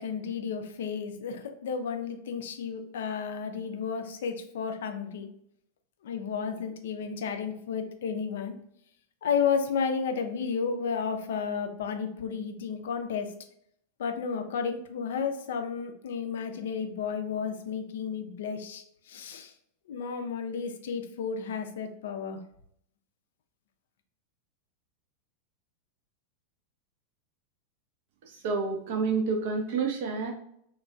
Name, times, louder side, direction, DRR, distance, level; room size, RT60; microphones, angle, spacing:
voice 1, 0.0-5.3 6.0-8.5 9.2-13.3 14.0-19.5 19.9-22.4, left 6 dB, 60° left, 5 dB, 0.4 m, -32 dB
voice 2, 28.3-30.3, right 4 dB, 50° right, 3 dB, 0.4 m, -29 dB
3.2 x 2.2 x 2.3 m, 0.71 s
figure-of-eight pair, 90°, 0 cm